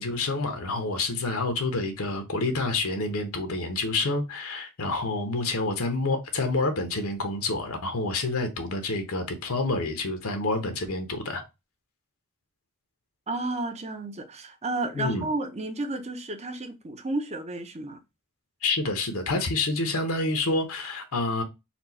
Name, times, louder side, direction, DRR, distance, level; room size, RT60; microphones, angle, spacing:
voice 1, 0.0-11.4 14.9-15.3 18.6-21.4, left 2 dB, 70° left, 1.0 m, -28 dB
voice 2, 13.3-18.0, right 2 dB, 30° right, 0.8 m, -32 dB
4.4 x 2.4 x 4.1 m
head